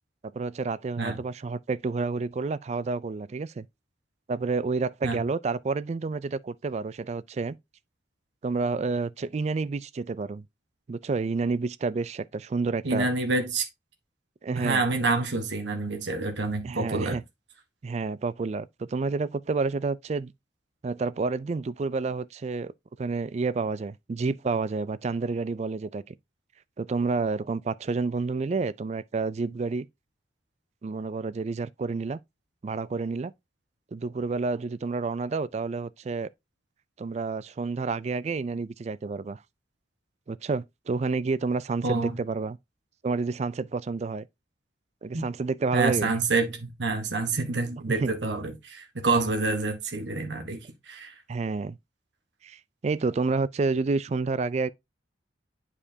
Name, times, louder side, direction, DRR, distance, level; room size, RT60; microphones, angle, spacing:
voice 1, 0.3-3.7 4.3-7.6 8.4-10.4 10.9-13.1 14.4-14.8 16.6-17.2 17.8-20.3 20.8-22.7 23.0-26.1 26.8-29.9 30.8-32.2 32.6-33.3 33.9-36.3 37.0-39.4 40.3-42.6 43.0-44.3 45.0-46.1 48.0-48.1 51.3-51.8 52.4-54.7, right 4 dB, 35° right, 0.3 m, -29 dB
voice 2, 12.8-13.6 14.6-17.2 41.8-42.2 45.1-45.3 45.7-51.1, right 3 dB, 70° right, 1.3 m, -27 dB
8.8 x 4.9 x 2.7 m
head